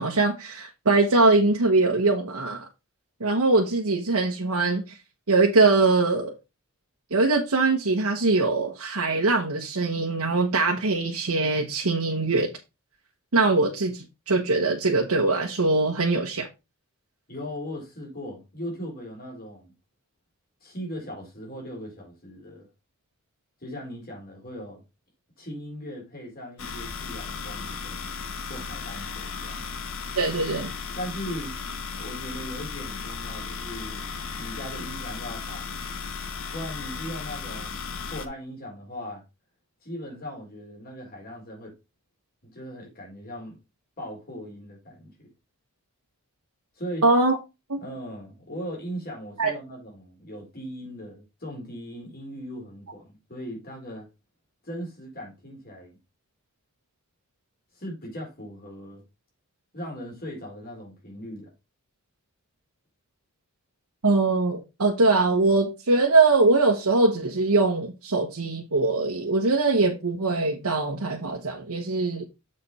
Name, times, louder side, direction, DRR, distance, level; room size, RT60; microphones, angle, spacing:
voice 1, 0.0-2.7 3.2-5.0 5.3-6.3 7.1-12.5 13.3-16.5 30.2-30.7 47.0-47.4 47.7-47.8 49.4-49.5 64.0-72.2, right 3 dB, 85° right, 1.2 m, -22 dB
voice 2, 17.3-19.7 20.6-22.7 23.6-24.8 25.4-28.2 28.5-29.6 31.0-31.6 32.0-35.7 36.5-39.2 39.8-41.7 42.4-43.6 44.0-45.3 46.8-47.0 47.8-54.1 54.6-56.0 57.7-59.0 59.7-61.5, equal, 40° left, 4.2 m, -38 dB
sound 1, 26.6-38.3, left 5 dB, 65° left, 1.0 m, -35 dB
7.5 x 5.1 x 4.2 m
head